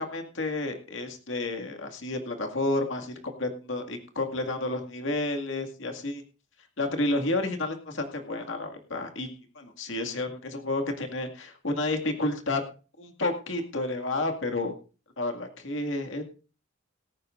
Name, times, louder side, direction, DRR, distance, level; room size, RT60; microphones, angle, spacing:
voice 1, 0.0-6.2 6.8-12.6 13.0-14.7 15.2-16.2, left 2 dB, 70° left, 4 dB, 2.1 m, -31 dB
17.0 x 14.5 x 2.6 m, 0.35 s
head